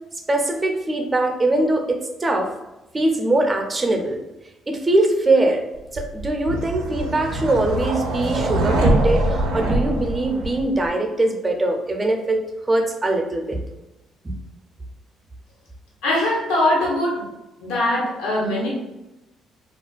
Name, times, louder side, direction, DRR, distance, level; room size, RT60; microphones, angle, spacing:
voice 1, 0.3-2.5 2.9-4.2 4.7-5.6 5.9-13.6 14.2-14.3, right 2 dB, 25° right, 4 dB, 0.5 m, -22 dB
sound 1, 6.0-10.9, right 1 dB, 85° right, 0.4 m, -23 dB
voice 2, 16.0-17.3 17.6-18.7, left 1 dB, 85° left, -4 dB, 0.7 m, -21 dB
2.4 x 2.1 x 2.4 m, 0.99 s
supercardioid pair, 65°, 0 cm